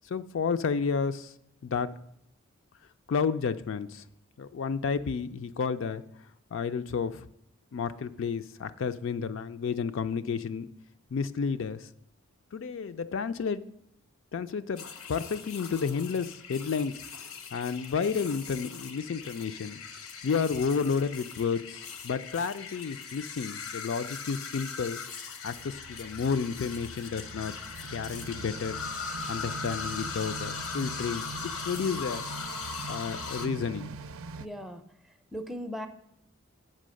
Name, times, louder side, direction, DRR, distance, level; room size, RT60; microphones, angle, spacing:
voice 1, 0.1-1.3 1.6-1.9 3.1-4.0 4.4-6.0 6.5-7.3 7.7-10.7 11.1-11.9 12.5-13.6 14.3-17.0 17.5-19.8 20.2-25.0 25.4-27.5 27.9-28.8 29.3-32.3 32.9-33.9, left 5 dB, 60° left, 11 dB, 0.4 m, -31 dB
sound 1, 14.8-33.5, left 5 dB, 85° left, 0.9 m, -40 dB
sound 2, 25.5-34.5, right 4 dB, 75° right, 0.5 m, -43 dB
voice 2, 34.4-35.9, equal, ahead, 7 dB, 0.4 m, -39 dB
7.6 x 5.4 x 6.3 m, 0.73 s
head